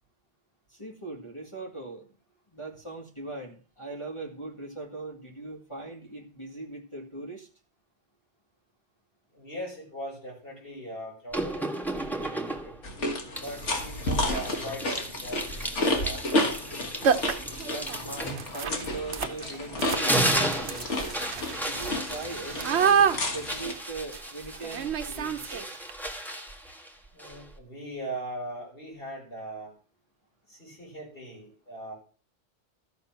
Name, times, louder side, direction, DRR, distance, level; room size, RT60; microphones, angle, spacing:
voice 1, 0.7-2.2 2.5-7.5 17.6-20.9 21.6-23.0 23.3-25.8, right 2 dB, 25° left, 0 dB, 2.0 m, -40 dB
voice 2, 9.3-12.8 13.4-16.7 27.1-29.7 30.5-31.9, right 1 dB, 55° left, -3 dB, 5.4 m, -40 dB
sound 1, 11.3-12.9 13.4-19.4 19.7-27.6, right 1 dB, ahead, 1.5 m, -34 dB
sound 2, 12.8-23.7, left 1 dB, 80° left, 2.1 m, -32 dB
sound 3, 13.6-13.7 14.2-14.6 16.3-16.5 16.7-16.8 17.0-25.9, right 7 dB, 70° right, 1.1 m, -29 dB
13.5 x 6.7 x 6.0 m, 0.39 s
omnidirectional pair, 1.2 m